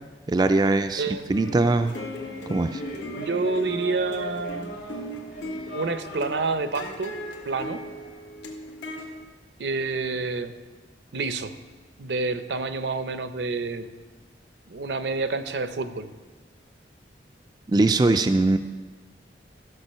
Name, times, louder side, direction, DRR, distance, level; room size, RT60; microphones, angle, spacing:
voice 1, 0.3-1.0 1.3-1.9 2.5-2.8 17.7-18.6, right 2 dB, 25° right, 7 dB, 0.3 m, -21 dB
sound 1, 1.3-9.2, equal, 90° left, 1.5 m, -38 dB
sound 2, 1.8-8.1, equal, 65° left, 2.3 m, -40 dB
voice 2, 3.1-4.8 5.7-7.1 7.4-7.8 9.6-10.5 11.1-11.5 12.0-13.9 14.7-16.1, right 3 dB, 70° right, 10 dB, 0.7 m, -28 dB
13.5 x 6.6 x 5.6 m, 1.3 s
head